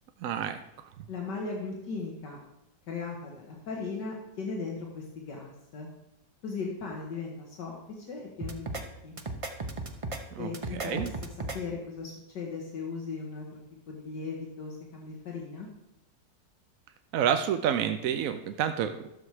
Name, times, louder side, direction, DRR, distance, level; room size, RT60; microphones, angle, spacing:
voice 1, 0.2-0.6 10.3-11.1 17.1-19.1, right 9 dB, 70° right, 8 dB, 0.8 m, -29 dB
voice 2, 1.1-2.4 2.9-5.9 6.4-9.2 10.4-11.1 11.5-13.6 13.9-15.7, left 4 dB, 75° left, -1 dB, 1.9 m, -37 dB
sound 1, 8.4-8.8 9.2-10.2 10.5-11.6, right 2 dB, 40° right, 0.4 m, -35 dB
12.5 x 7.1 x 4.8 m, 0.88 s
omnidirectional pair, 1.9 m